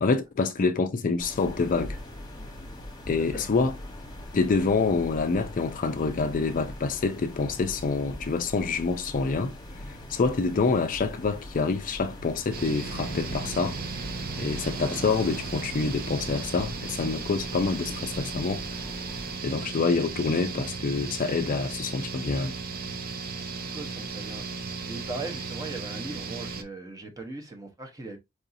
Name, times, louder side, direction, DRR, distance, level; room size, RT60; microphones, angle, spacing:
voice 1, 0.0-2.0 3.1-3.8 4.3-9.5 9.9-13.8 14.4-18.6 19.4-22.6, left 4 dB, 40° left, 0.4 m, -27 dB
sound 1, 1.2-19.4, left 1 dB, 20° left, 1.1 m, -42 dB
sound 2, 12.5-26.6, right 4 dB, 45° right, 0.5 m, -36 dB
sound 3, 12.8-19.4, right 2 dB, 65° right, 2.1 m, -43 dB
voice 2, 23.6-24.4 24.9-28.2, right 2 dB, 15° right, 0.9 m, -39 dB
4.7 x 2.7 x 2.6 m
head